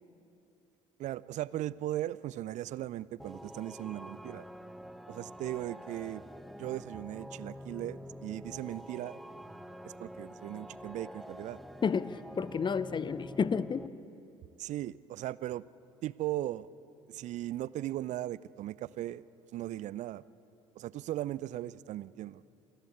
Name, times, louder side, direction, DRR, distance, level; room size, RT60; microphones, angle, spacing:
voice 1, 1.0-4.4 5.1-6.2 6.6-9.2 9.8-11.6 14.6-15.6 16.0-16.7 17.1-19.2 19.5-20.2 20.8-22.4, right 14 dB, 50° right, 20 dB, 0.5 m, -38 dB
sound 1, 3.2-13.9, equal, ahead, 0.9 m, -47 dB
voice 2, 11.8-13.9, left 6 dB, 30° left, 17 dB, 0.8 m, -31 dB
27.0 x 11.5 x 8.6 m, 2.6 s
figure-of-eight pair, 55°, 16 cm